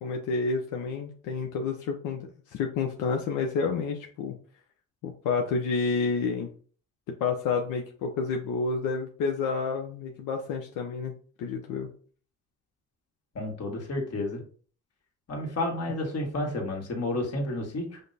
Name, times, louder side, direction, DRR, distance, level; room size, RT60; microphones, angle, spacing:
voice 1, 0.0-4.4 5.0-6.5 7.2-11.1 11.4-11.9, left 4 dB, 90° left, 3 dB, 0.6 m, -29 dB
voice 2, 13.4-14.4 15.3-18.0, left 1 dB, 55° left, 1 dB, 1.6 m, -31 dB
5.1 x 2.2 x 3.9 m, 0.43 s
cardioid pair, 90°, 30 cm